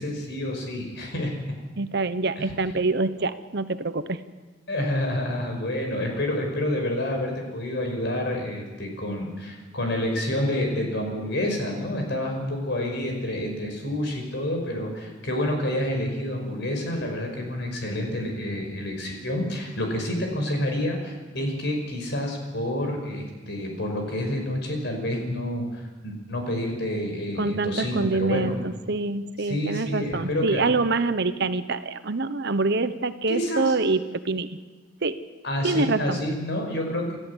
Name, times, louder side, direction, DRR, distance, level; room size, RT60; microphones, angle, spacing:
voice 1, 0.0-1.3 2.4-2.5 4.7-28.6 29.4-30.7 33.3-33.7 35.4-37.2, left 1 dB, 65° left, 2 dB, 5.5 m, -28 dB
voice 2, 1.8-4.2 27.4-34.6 35.0-35.2 35.6-36.2, right 3 dB, 60° right, 11 dB, 1.1 m, -26 dB
28.0 x 14.0 x 8.2 m, 1.3 s
head